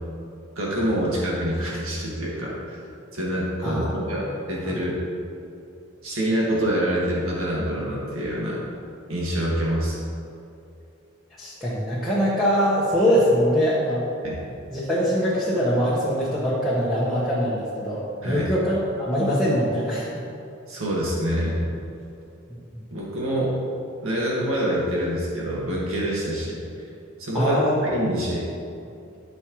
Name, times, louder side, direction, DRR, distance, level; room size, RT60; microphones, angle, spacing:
voice 1, 0.6-2.8 3.1-5.0 6.0-8.6 9.1-10.0 14.2-14.4 18.2-18.5 20.7-21.6 22.9-23.6 24.0-26.6 27.2-28.4, equal, 85° right, -5 dB, 1.9 m, -26 dB
voice 2, 3.6-4.3 4.6-4.7 11.4-14.0 14.7-20.1 27.3-27.9, equal, ahead, -10 dB, 1.2 m, -23 dB
13.0 x 6.2 x 3.1 m, 2.6 s
head